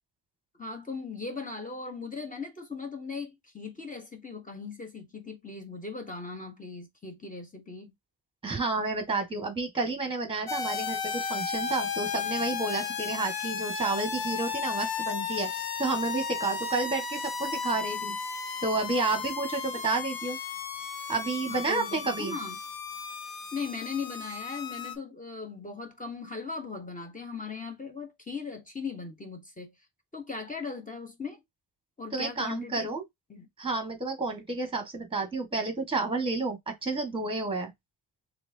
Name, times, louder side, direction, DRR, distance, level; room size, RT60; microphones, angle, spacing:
voice 1, 0.6-7.9 21.5-22.6 23.5-29.7 30.1-31.4 32.0-32.9 33.3-33.5, left 4 dB, 15° left, 1.0 m, -38 dB
voice 2, 8.4-15.5 15.8-18.2 18.6-20.4 21.1-22.4 32.1-33.0 33.6-37.7, right 3 dB, 10° right, 1.4 m, -30 dB
sound 1, 10.5-24.9, left 6 dB, 50° left, 0.8 m, -34 dB
4.4 x 3.4 x 2.7 m
wide cardioid pair, 155°, 48 cm